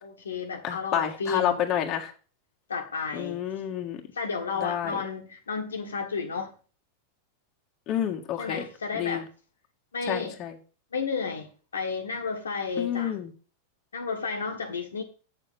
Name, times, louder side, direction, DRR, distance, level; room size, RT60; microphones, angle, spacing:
voice 1, 0.0-1.7 2.7-3.4 4.1-6.5 8.4-9.3 9.9-10.4 10.9-13.2 13.9-15.0, left 5 dB, 70° left, 1.6 m, -32 dB
voice 2, 0.6-2.1 3.1-4.0 4.6-5.0 7.9-8.6 8.9-9.2 10.1-10.6 12.8-13.3, left 10 dB, 35° left, 1.7 m, -29 dB
8.3 x 7.0 x 5.4 m
figure-of-eight pair, 90°, 0 cm